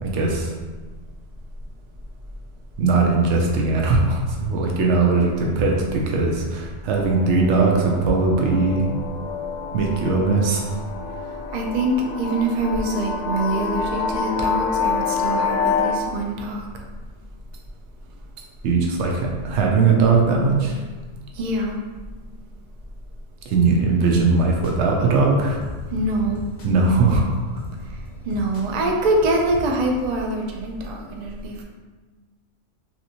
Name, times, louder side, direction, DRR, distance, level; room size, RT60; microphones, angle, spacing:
voice 1, 0.0-0.5 2.8-9.0 9.7-10.6 18.6-20.8 23.5-25.6 26.6-27.2, right 3 dB, 75° right, -1 dB, 0.9 m, -19 dB
sound 1, 6.9-15.9, left 5 dB, 90° left, 0.9 m, -27 dB
voice 2, 11.5-16.6 21.4-21.8 25.9-26.4 28.3-31.6, right 1 dB, 55° right, 1 dB, 0.5 m, -24 dB
sound 2, 24.0-30.2, left 1 dB, 50° left, 0.5 m, -39 dB
3.2 x 3.0 x 2.8 m, 1.3 s
omnidirectional pair, 1.2 m